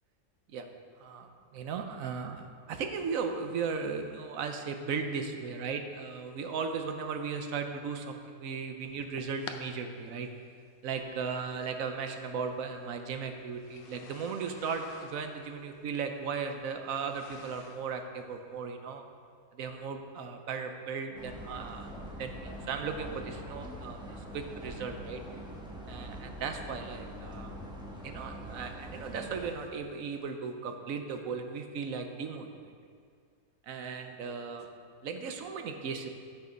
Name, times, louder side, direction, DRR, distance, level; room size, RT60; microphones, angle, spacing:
voice 1, 1.0-10.3 10.8-19.0 19.5-21.9 22.2-25.2 25.9-27.6 28.0-32.7 33.6-34.7 35.0-36.1, right 5 dB, 60° right, 5 dB, 1.0 m, -37 dB
sound 1, 8.9-9.6 10.6-10.7 11.9-12.0 13.6-17.9, left 7 dB, 85° left, 1.4 m, -49 dB
sound 2, 10.9-18.4, right 2 dB, 45° right, 0.8 m, -56 dB
sound 3, 21.1-29.5, equal, 5° right, 0.9 m, -43 dB
11.5 x 6.6 x 5.1 m, 2.2 s
omnidirectional pair, 1.9 m